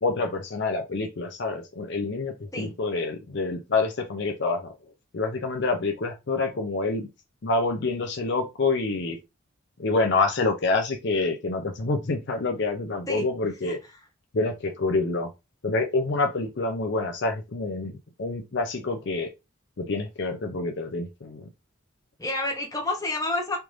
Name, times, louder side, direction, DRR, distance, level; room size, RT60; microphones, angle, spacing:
voice 1, 0.0-4.7 5.1-7.1 7.4-9.2 9.8-13.8 14.3-15.3 15.6-17.9 18.2-19.3 19.8-21.5, left 3 dB, 50° left, 0.5 m, -27 dB
voice 2, 22.2-23.6, left 2 dB, 15° left, 0.8 m, -29 dB
3.3 x 2.5 x 3.1 m
head